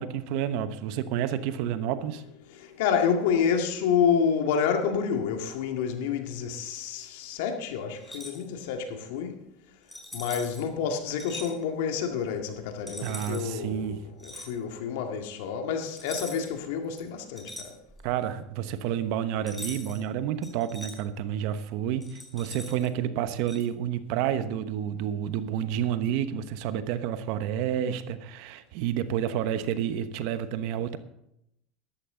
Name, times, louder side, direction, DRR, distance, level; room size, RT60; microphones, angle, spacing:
voice 1, 0.0-2.2 13.0-14.0 18.0-31.0, right 10 dB, 70° right, 1.0 m, -30 dB
voice 2, 2.6-9.4 10.1-17.7, left 7 dB, 80° left, 2.0 m, -28 dB
sound 1, 8.0-8.4 9.9-10.6 11.2-11.5 12.9-13.5 14.2-14.5 16.0-16.6 16.9-18.1 19.5-20.0 20.4-21.0 22.0-22.9 23.5-23.6, left 1 dB, 5° left, 4.5 m, -42 dB
13.0 x 13.0 x 3.8 m
supercardioid pair, 110°, 0 cm